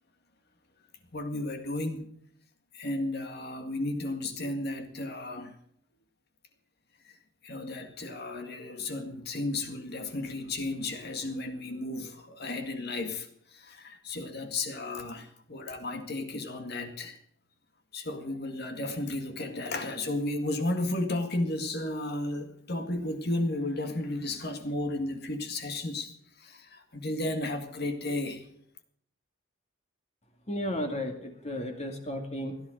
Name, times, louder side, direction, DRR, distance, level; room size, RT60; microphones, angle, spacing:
voice 1, 1.1-2.1 2.7-5.5 7.0-7.1 7.4-17.2 17.9-28.5, left 2 dB, 50° left, 2.0 m, -33 dB
voice 2, 30.5-32.6, left 1 dB, 30° left, 2.2 m, -34 dB
16.5 x 11.0 x 6.5 m
head